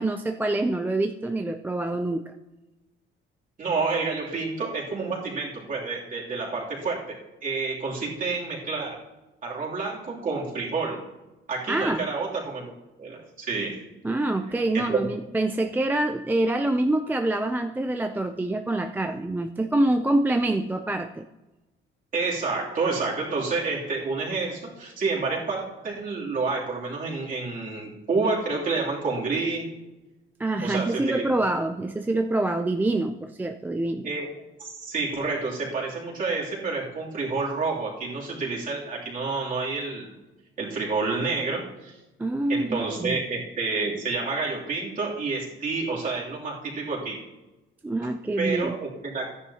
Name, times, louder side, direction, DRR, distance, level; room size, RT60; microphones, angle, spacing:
voice 1, 0.0-2.3 11.7-12.0 14.0-21.2 30.4-34.1 42.2-43.2 47.8-48.7, right 2 dB, 10° right, 6 dB, 0.3 m, -26 dB
voice 2, 3.6-9.0 9.4-11.1 11.5-12.7 13.0-13.8 14.7-15.1 22.1-29.7 30.6-31.5 34.0-34.3 34.6-40.1 40.6-42.0 42.5-47.2 48.4-49.3, right 4 dB, 40° right, -4 dB, 3.0 m, -29 dB
14.5 x 10.0 x 2.9 m, 1.1 s
cardioid pair, 165°, 21 cm